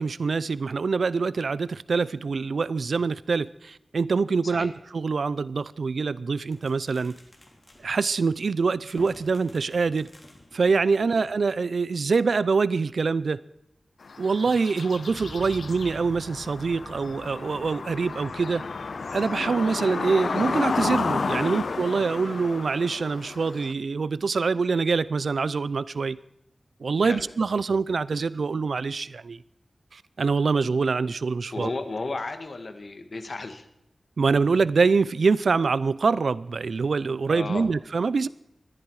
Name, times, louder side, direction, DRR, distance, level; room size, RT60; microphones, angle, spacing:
voice 1, 0.0-7.2 7.8-10.1 10.5-13.4 14.2-18.6 19.1-26.2 26.8-29.4 29.9-31.7 34.2-38.3, right 4 dB, 85° right, 18 dB, 0.5 m, -25 dB
sound 1, 6.3-11.5, left 1 dB, 30° left, 3.1 m, -52 dB
sound 2, 14.1-23.7, left 4 dB, 80° left, 0.5 m, -32 dB
sound 3, 15.1-23.9, right 1 dB, 35° right, 1.6 m, -48 dB
voice 2, 31.5-33.7 37.3-37.7, left 3 dB, 60° left, 8 dB, 1.7 m, -34 dB
20.5 x 14.0 x 4.8 m, 0.81 s
wide cardioid pair, 100°, 0 cm